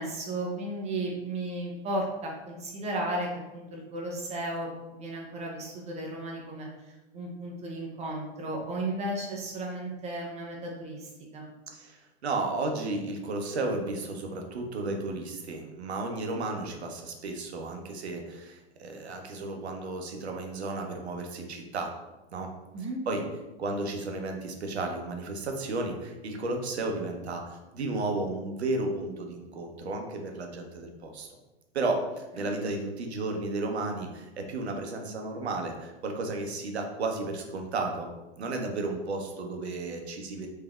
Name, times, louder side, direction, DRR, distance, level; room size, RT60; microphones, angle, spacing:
voice 1, 0.0-11.5 22.7-23.0 32.4-32.5, right 1 dB, 20° right, -1 dB, 0.6 m, -34 dB
voice 2, 11.7-21.9 22.3-22.5 23.1-23.2 23.6-31.4 31.7-38.1 38.4-40.5, right 2 dB, 80° right, 3 dB, 0.7 m, -33 dB
3.4 x 3.2 x 2.3 m, 1.1 s
figure-of-eight pair, 100°, 32 cm